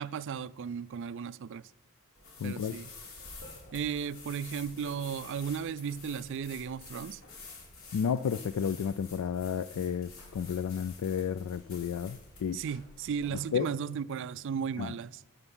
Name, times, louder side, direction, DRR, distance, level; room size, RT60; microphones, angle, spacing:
voice 1, 0.0-1.7 2.4-2.9 3.7-7.2 12.5-15.2, right 7 dB, 55° right, 0.3 m, -35 dB
sound 1, 2.1-13.4, left 3 dB, 65° left, 3.5 m, -49 dB
voice 2, 2.4-2.8 7.9-12.6 13.5-13.7 14.8-14.9, left 7 dB, 85° left, 0.3 m, -32 dB
12.5 x 7.9 x 5.6 m
head